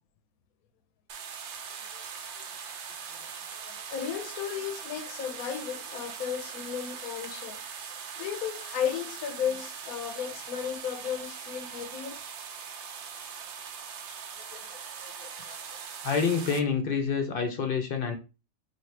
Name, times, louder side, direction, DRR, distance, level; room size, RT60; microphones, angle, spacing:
sound 1, 1.1-16.6, right 7 dB, 65° right, 0.8 m, -41 dB
voice 1, 3.6-7.6 8.2-12.2 14.5-15.8, left 8 dB, 90° left, 1.1 m, -35 dB
voice 2, 16.0-18.2, left 6 dB, 55° left, 0.6 m, -27 dB
3.1 x 2.7 x 4.4 m
omnidirectional pair, 1.5 m